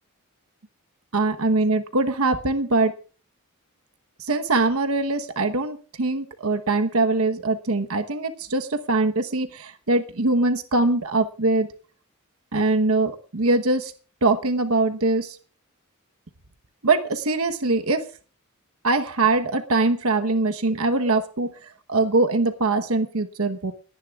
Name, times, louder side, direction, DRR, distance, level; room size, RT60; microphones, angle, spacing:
voice 1, 1.1-2.9 4.2-11.7 12.5-13.9 14.2-15.4 16.8-18.1 18.8-21.5 21.9-23.7, right 3 dB, 75° right, 7 dB, 1.1 m, -22 dB
29.5 x 10.5 x 2.4 m, 0.38 s
head